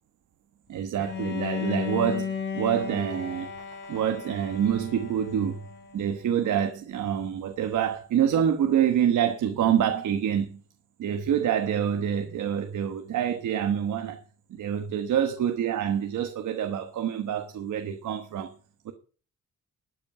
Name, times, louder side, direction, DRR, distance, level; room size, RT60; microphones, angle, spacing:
voice 1, 0.7-3.5 3.8-5.6 5.9-10.6 11.0-14.2 14.5-18.5 18.8-18.9, right 9 dB, 85° right, 1.3 m, -26 dB
Bowed string instrument, 1.0-6.0, left 6 dB, 40° left, 3.0 m, -34 dB
12.5 x 8.5 x 5.5 m
wide cardioid pair, 160°, 29 cm